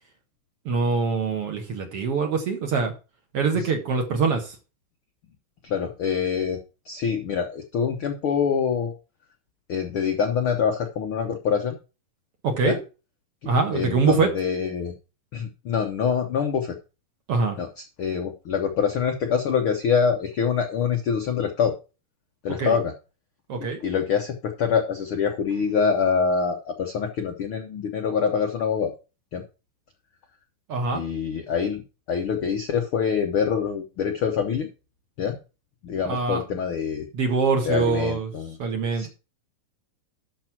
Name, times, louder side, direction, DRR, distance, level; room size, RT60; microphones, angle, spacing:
voice 1, 0.7-2.9 3.3-4.6 12.4-12.8 13.5-14.3 17.3-17.6 22.6-22.8 23.5-23.8 30.7-31.0 36.0-36.4 37.1-38.3 38.6-39.1, right 4 dB, 55° right, 4 dB, 2.0 m, -24 dB
voice 2, 5.6-8.9 9.7-11.8 12.6-12.8 13.7-14.9 15.3-16.8 17.6-21.7 22.4-22.9 23.8-28.9 29.3-29.4 30.9-34.7 35.2-35.4 35.8-37.1 37.6-38.6 38.9-39.1, left 6 dB, 75° left, 4 dB, 1.2 m, -25 dB
12.5 x 4.5 x 6.0 m, 0.32 s
omnidirectional pair, 4.0 m